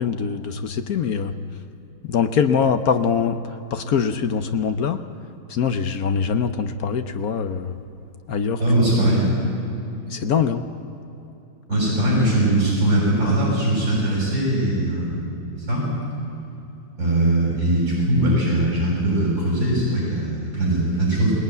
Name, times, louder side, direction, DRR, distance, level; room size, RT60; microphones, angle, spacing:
voice 1, 0.0-1.3 2.1-3.4 3.7-5.0 5.5-7.8 8.3-8.6 10.1-10.6, left 6 dB, 60° left, 9 dB, 1.0 m, -23 dB
voice 2, 8.6-9.3 11.7-15.3 15.7-15.9 17.0-21.3, right 1 dB, 45° right, -6 dB, 7.4 m, -20 dB
22.0 x 18.0 x 9.4 m, 2.8 s
omnidirectional pair, 2.3 m